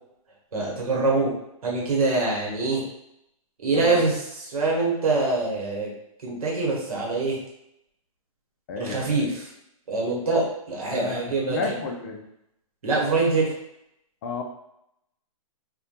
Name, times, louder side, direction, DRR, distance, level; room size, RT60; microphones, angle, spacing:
voice 1, 0.5-1.3 1.6-2.9 3.6-5.9 6.2-7.4 8.8-9.5 9.9-11.7 12.8-13.5, right 3 dB, 80° right, -3 dB, 0.9 m, -24 dB
voice 2, 8.7-9.3 10.9-12.2 14.2-14.4, left 4 dB, 35° left, 3 dB, 0.4 m, -32 dB
2.2 x 2.2 x 2.8 m, 0.80 s
hypercardioid pair, 145°, 18 cm